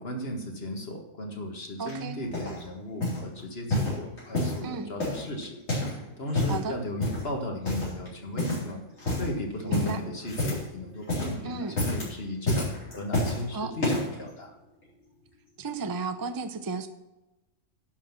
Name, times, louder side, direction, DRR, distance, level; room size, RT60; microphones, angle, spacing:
voice 1, 0.0-5.6 6.2-8.8 9.2-14.6, left 1 dB, 50° left, 2 dB, 1.9 m, -36 dB
voice 2, 1.8-2.2 4.6-4.9 6.5-6.8 9.7-10.0 11.4-11.8 13.5-13.7 15.6-16.9, right 4 dB, 25° right, 9 dB, 0.5 m, -33 dB
sound 1, 1.9-2.6 3.0-3.3 3.7-4.6 5.0-6.0 6.2-6.6 7.0-7.3 7.6-8.1 8.4-8.7 9.0-9.3 9.7-10.7 11.0-11.4 11.7-12.1 12.5-13.4 13.8-14.2 14.8-14.9, left 1 dB, 85° left, 4.5 m, -29 dB
11.5 x 5.7 x 5.8 m, 0.99 s
omnidirectional pair, 1.3 m